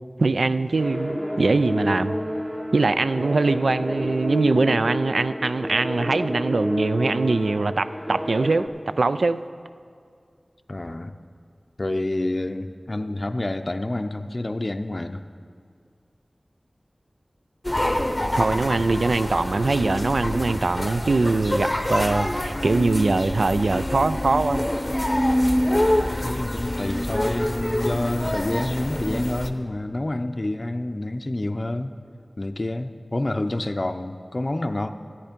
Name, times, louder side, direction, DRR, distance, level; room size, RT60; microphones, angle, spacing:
voice 1, 0.2-2.2 2.7-8.7 9.0-9.4 18.3-24.7, right 3 dB, 85° right, 13 dB, 0.3 m, -22 dB
sound 1, 0.8-8.7, equal, 5° right, 0.9 m, -29 dB
voice 2, 10.7-11.1 11.8-15.2 26.2-31.9 32.4-34.9, left 1 dB, 45° left, 7 dB, 0.5 m, -28 dB
sound 2, 17.6-29.5, left 1 dB, 20° left, 0.8 m, -26 dB
13.0 x 9.8 x 5.2 m, 2.2 s
wide cardioid pair, 50°, 0 cm